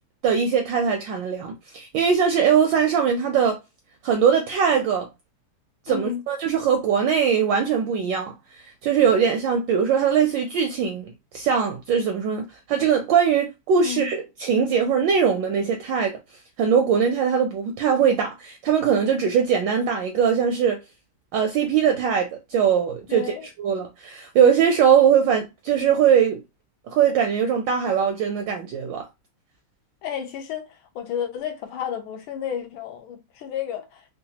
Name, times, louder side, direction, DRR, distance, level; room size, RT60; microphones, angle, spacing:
voice 1, 0.2-3.6 4.0-5.1 5.9-16.1 16.6-20.8 21.3-23.2 23.6-26.4 26.9-29.0, right 7 dB, 75° right, 1.1 m, -21 dB
voice 2, 5.9-6.2 13.8-14.1 23.1-23.5 30.0-34.1, left 9 dB, 75° left, 1.5 m, -32 dB
3.8 x 2.2 x 2.8 m
omnidirectional pair, 2.4 m